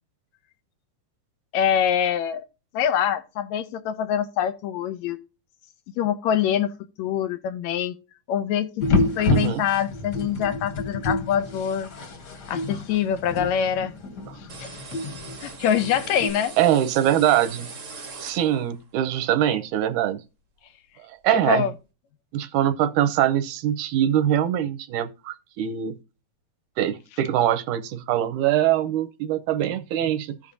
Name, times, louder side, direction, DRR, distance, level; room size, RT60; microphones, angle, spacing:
voice 1, 1.5-2.5 2.7-5.2 6.0-6.7 7.0-8.0 8.3-11.9 12.5-13.9 14.4-14.7 15.4-16.5 21.3-21.7, left 9 dB, 80° left, 1.8 m, -25 dB
sound 1, 8.8-16.3, left 3 dB, 45° left, 1.4 m, -29 dB
voice 2, 9.3-9.6 14.3-14.4 16.6-17.7 18.2-20.2 21.2-21.7 22.3-25.9 26.8-30.4, right 11 dB, 85° right, 2.2 m, -23 dB
sound 2, 14.5-18.8, right 4 dB, 50° right, 0.9 m, -41 dB
15.0 x 5.2 x 2.6 m
omnidirectional pair, 3.4 m